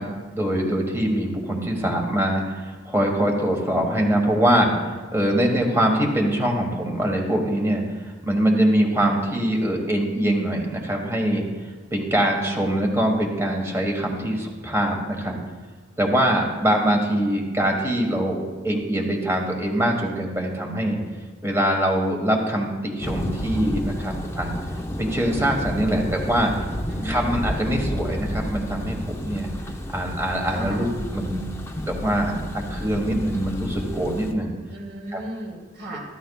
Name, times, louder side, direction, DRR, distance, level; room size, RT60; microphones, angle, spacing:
voice 1, 0.0-11.4 11.9-15.4 16.0-21.0 21.4-24.5 25.0-26.5 27.0-29.5 29.9-34.5 35.1-35.2, right 1 dB, 15° right, 1 dB, 1.4 m, -23 dB
Thunder, 23.0-34.3, equal, 15° left, 0.7 m, -31 dB
voice 2, 26.9-27.4 30.5-30.9 34.7-36.0, right 1 dB, 55° right, -2 dB, 2.7 m, -35 dB
13.5 x 12.5 x 2.3 m, 1.4 s
head